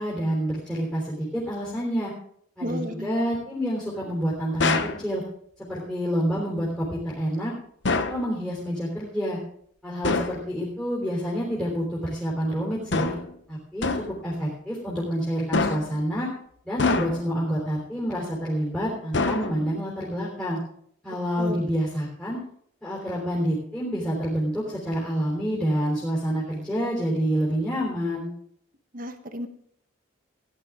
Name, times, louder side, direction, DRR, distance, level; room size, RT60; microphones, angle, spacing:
voice 1, 0.0-2.1 2.6-5.2 5.6-7.5 7.9-9.4 9.8-13.1 13.5-16.3 16.6-20.6 21.0-22.4 22.8-28.3, equal, 5° left, -6 dB, 3.4 m, -28 dB
voice 2, 2.6-3.1 21.4-21.7 28.9-29.5, equal, 40° right, 7 dB, 1.2 m, -33 dB
sound 1, 4.6-5.0 7.8-8.3 10.0-10.4 12.9-13.3 13.8-14.2 15.5-16.0 16.8-17.4 19.1-19.8, left 3 dB, 60° left, 0.9 m, -26 dB
16.5 x 10.5 x 3.7 m, 0.65 s
head